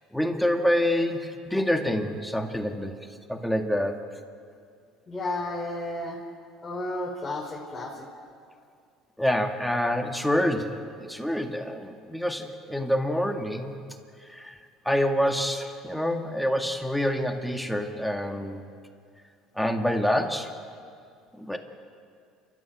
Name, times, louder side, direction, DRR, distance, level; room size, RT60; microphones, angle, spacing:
voice 1, 0.1-3.0 3.3-4.0 9.2-13.8 14.2-14.5 14.9-18.6 19.6-20.5 21.4-21.6, equal, 5° left, 4 dB, 2.1 m, -27 dB
voice 2, 5.1-6.2 6.6-8.1, left 2 dB, 20° left, -4 dB, 4.5 m, -32 dB
29.0 x 13.5 x 9.0 m, 2.3 s
supercardioid pair, 90°, 0 cm